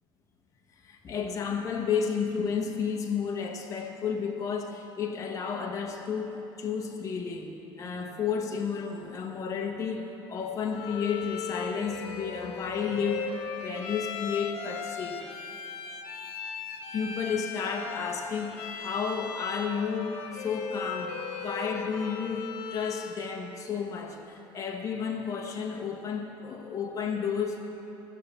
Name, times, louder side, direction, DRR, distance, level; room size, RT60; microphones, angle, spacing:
voice 1, 0.8-15.2 16.9-27.6, left 6 dB, 35° left, 2 dB, 1.1 m, -32 dB
Bowed string instrument, 10.7-23.2, left 6 dB, 85° left, 1.3 m, -38 dB
14.5 x 6.7 x 8.2 m, 3.0 s
cardioid pair, 115°, 9 cm